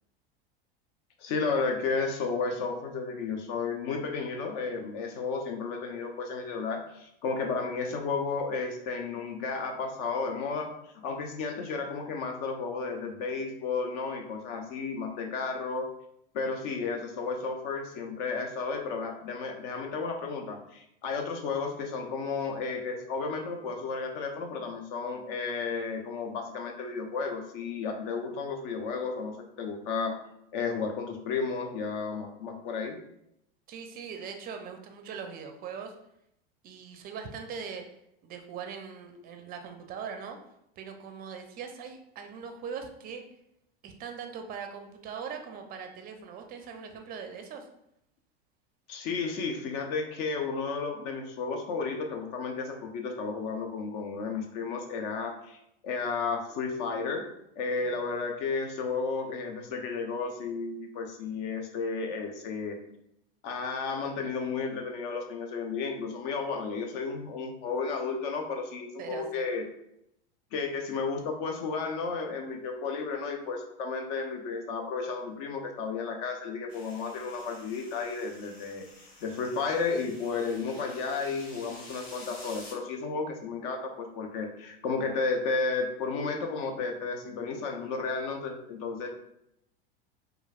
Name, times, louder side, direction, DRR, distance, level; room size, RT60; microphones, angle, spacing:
voice 1, 1.2-10.7 11.0-15.9 16.3-30.2 30.5-33.0 48.9-55.6 55.8-57.3 57.6-62.8 63.4-69.6 70.5-78.9 79.2-89.1, left 4 dB, 55° left, 3 dB, 0.6 m, -33 dB
voice 2, 33.7-35.9 36.6-37.8 38.2-40.4 40.8-43.2 43.8-47.7 57.8-58.1 69.0-69.4, right 6 dB, 30° right, 5 dB, 0.4 m, -41 dB
sound 1, 76.7-82.7, left 2 dB, 85° left, 1.0 m, -50 dB
3.0 x 2.3 x 2.3 m, 0.78 s
hypercardioid pair, 105°, 30 cm